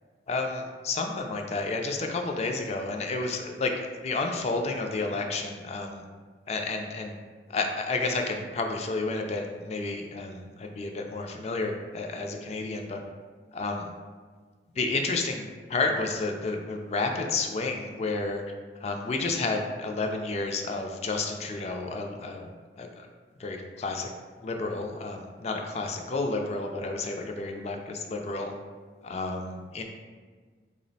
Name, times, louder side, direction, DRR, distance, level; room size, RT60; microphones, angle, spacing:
voice 1, 0.3-3.7 4.0-6.0 6.5-7.2 7.5-13.0 13.5-13.9 14.8-18.4 18.8-22.5 22.8-23.1 23.4-24.1 24.4-28.5 29.0-29.8, left 3 dB, 35° left, 3 dB, 0.3 m, -31 dB
3.5 x 2.0 x 3.9 m, 1.5 s
head